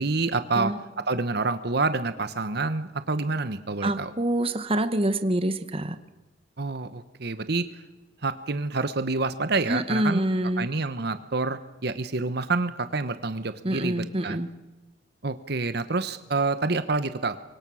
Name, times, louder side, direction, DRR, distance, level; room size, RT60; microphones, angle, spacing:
voice 1, 0.0-4.1 6.6-7.7 8.2-10.2 10.6-14.4 15.2-17.4, right 3 dB, 60° right, 11 dB, 1.1 m, -28 dB
voice 2, 3.8-6.0 9.7-10.7 13.6-14.5, right 1 dB, 30° right, 10 dB, 1.3 m, -26 dB
25.5 x 23.5 x 6.3 m, 1.1 s
head